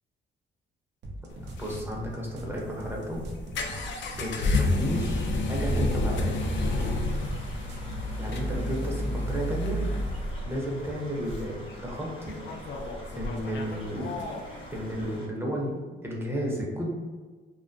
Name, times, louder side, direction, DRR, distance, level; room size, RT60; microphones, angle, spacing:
sound 1, 1.0-8.1, right 1 dB, 60° right, 0.5 m, -41 dB
sound 2, 1.3-15.2, left 1 dB, 65° left, 0.4 m, -31 dB
voice 1, 1.6-3.2 4.2-6.4 8.2-9.9 10.4-12.4 13.1-14.1 14.7-16.9, equal, 10° right, -3 dB, 0.6 m, -33 dB
sound 3, 6.4-15.3, equal, 25° left, 0.7 m, -47 dB
2.4 x 2.2 x 2.5 m, 1.4 s
cardioid pair, 90°, 20 cm